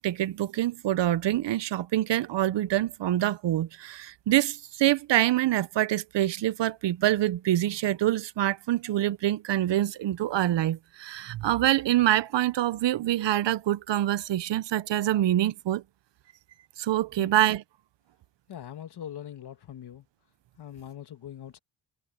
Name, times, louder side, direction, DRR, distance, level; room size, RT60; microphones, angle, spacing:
voice 1, 0.0-15.8 16.8-17.6, right 13 dB, 65° right, 0.7 m, -25 dB
voice 2, 18.5-20.0 20.6-21.6, left 10 dB, 60° left, 1.4 m, -42 dB
wide cardioid pair, 130°, 46 cm